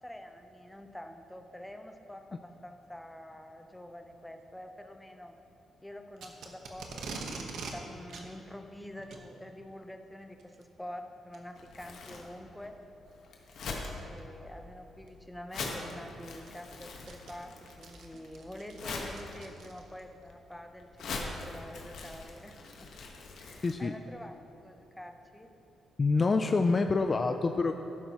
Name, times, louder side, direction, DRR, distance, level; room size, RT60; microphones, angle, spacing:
voice 1, 0.0-5.3 5.8-12.7 14.0-22.9 23.4-24.4 24.6-25.5, left 1 dB, 5° left, 5 dB, 0.7 m, -47 dB
Packing tape duct tape, 6.2-7.8 8.1-8.3 9.0-9.2 10.4-10.6 11.3-11.4 12.1-12.2 13.7-14.0 15.1-15.2 15.5-15.6 16.1-20.0, right 4 dB, 75° right, 1.1 m, -44 dB
Crumpling crinkling, 11.5-23.7, left 3 dB, 70° left, 1.3 m, -43 dB
voice 2, 26.0-27.7, left 3 dB, 30° left, 6 dB, 0.3 m, -26 dB
12.0 x 10.5 x 3.0 m, 3.0 s
cardioid pair, 105°, 0 cm